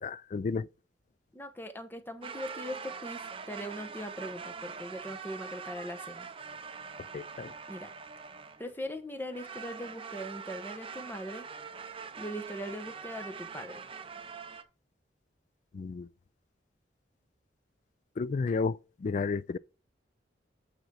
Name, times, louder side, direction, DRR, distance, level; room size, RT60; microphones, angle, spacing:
voice 1, 0.0-0.7 7.1-7.5 15.7-16.1 18.2-19.6, left 4 dB, 40° left, 0.3 m, -32 dB
voice 2, 1.3-6.3 7.7-7.9 8.6-11.5 12.2-13.8, equal, 10° left, 0.9 m, -40 dB
sound 1, 2.2-8.7 9.3-14.6, right 5 dB, 30° right, 0.6 m, -43 dB
9.1 x 5.1 x 4.8 m
head